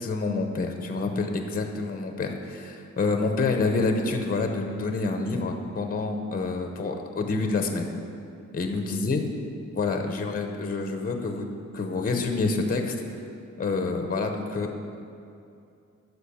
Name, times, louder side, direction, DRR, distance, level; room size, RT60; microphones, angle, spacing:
voice 1, 0.0-7.9 8.5-9.2 9.7-12.9 13.6-14.7, left 3 dB, 30° left, 5 dB, 0.7 m, -27 dB
10.0 x 6.3 x 7.0 m, 2.6 s
wide cardioid pair, 160°, 31 cm